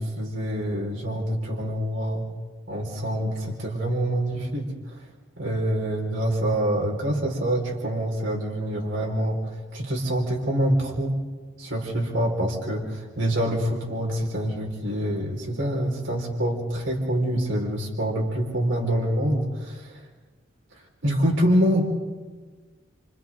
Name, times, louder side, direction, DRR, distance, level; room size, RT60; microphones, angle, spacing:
voice 1, 0.0-2.3 2.7-5.0 5.4-9.4 9.7-11.2 11.6-19.9 21.0-21.9, equal, 80° right, -2 dB, 4.9 m, -26 dB
29.5 x 28.0 x 3.8 m, 1.4 s
head